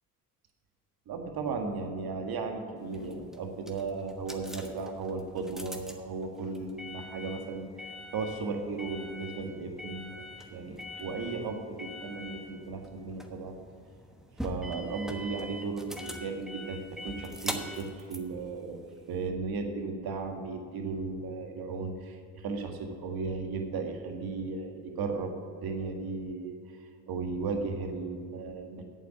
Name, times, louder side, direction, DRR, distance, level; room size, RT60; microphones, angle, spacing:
voice 1, 1.1-7.7 8.1-13.6 14.4-18.8 19.1-26.6 27.1-28.8, right 4 dB, 50° right, 3 dB, 1.8 m, -35 dB
Ford Escape electronic noises, 2.8-19.3, left 1 dB, ahead, 1.1 m, -43 dB
8.4 x 7.6 x 7.1 m, 2.4 s
hypercardioid pair, 60°, 48 cm